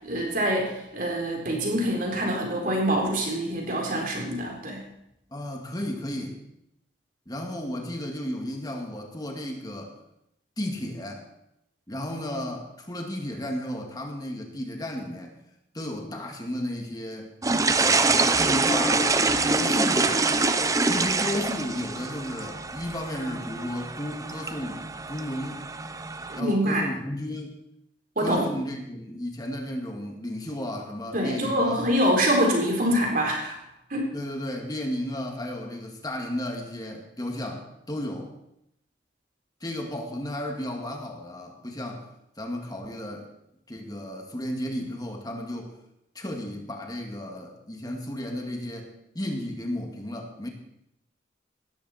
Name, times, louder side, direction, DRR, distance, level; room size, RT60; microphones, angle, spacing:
voice 1, 0.0-4.8 26.3-26.8 28.2-28.5 31.1-33.6 33.9-34.1, equal, 45° right, 0 dB, 4.1 m, -25 dB
voice 2, 5.3-6.4 7.3-9.9 10.6-11.3 11.9-15.4 15.7-17.3 17.8-20.4 20.9-25.6 26.3-27.6 28.2-31.9 34.1-38.3 39.6-42.1 42.4-43.3 43.7-45.7 46.2-50.5, left 1 dB, 20° left, 2 dB, 2.1 m, -33 dB
sound 1, 17.4-26.4, right 3 dB, 20° right, 0.6 m, -25 dB
17.5 x 13.5 x 4.4 m, 0.80 s
head